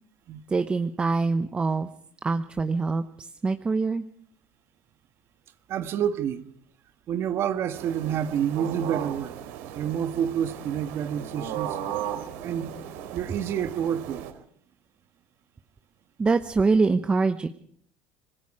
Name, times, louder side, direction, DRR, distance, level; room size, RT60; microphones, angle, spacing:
voice 1, 0.5-1.9 2.2-4.0 16.2-17.5, right 4 dB, 15° right, 0.9 m, -24 dB
voice 2, 5.7-6.4 7.1-9.4 9.7-11.8 12.4-12.7 13.1-14.2, right 9 dB, 45° right, 1.6 m, -28 dB
sound 1, 7.7-14.3, right 10 dB, 90° right, 4.3 m, -36 dB
26.0 x 20.5 x 4.9 m
cardioid pair, 135°, 6 cm